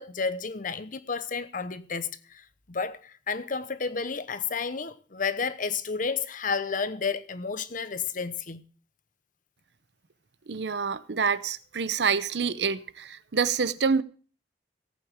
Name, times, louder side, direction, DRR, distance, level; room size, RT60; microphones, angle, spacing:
voice 1, 0.0-8.6, left 5 dB, 50° left, 1.0 m, -31 dB
voice 2, 10.5-14.0, right 5 dB, 75° right, 0.7 m, -27 dB
17.5 x 8.7 x 3.6 m
head